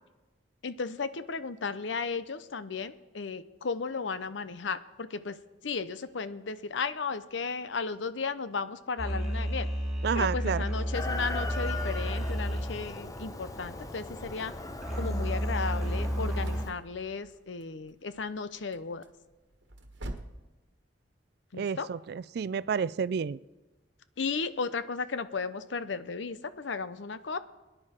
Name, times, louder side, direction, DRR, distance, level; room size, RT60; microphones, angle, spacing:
voice 1, 0.6-5.4 5.6-9.7 10.1-14.5 15.0-19.0 21.5-21.9 24.2-27.4, left 4 dB, 85° left, 13 dB, 0.7 m, -35 dB
sound 1, 9.0-16.6, equal, ahead, 3.3 m, -32 dB
voice 2, 10.0-10.6 21.6-23.4, right 6 dB, 60° right, 19 dB, 0.3 m, -30 dB
Chicken rooster, 10.9-16.7, left 2 dB, 20° left, 0.7 m, -39 dB
sound 2, 15.7-20.5, right 1 dB, 80° right, 1.3 m, -46 dB
23.0 x 10.0 x 4.4 m, 1.1 s
head